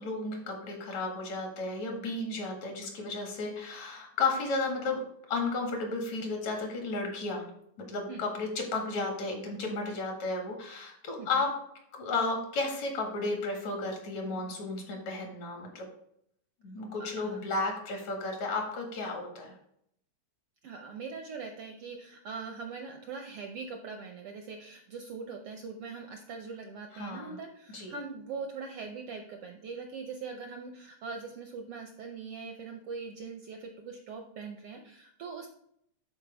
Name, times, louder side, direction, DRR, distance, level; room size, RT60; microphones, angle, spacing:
voice 1, 0.0-5.0 5.3-7.4 7.9-11.5 11.9-15.9 16.6-19.5 26.9-27.4 27.7-27.9, left 3 dB, 70° left, 1 dB, 3.1 m, -33 dB
voice 2, 11.2-11.5 17.0-17.4 20.6-35.5, right 5 dB, 75° right, 4 dB, 1.3 m, -42 dB
11.0 x 4.6 x 3.4 m, 0.72 s
omnidirectional pair, 3.3 m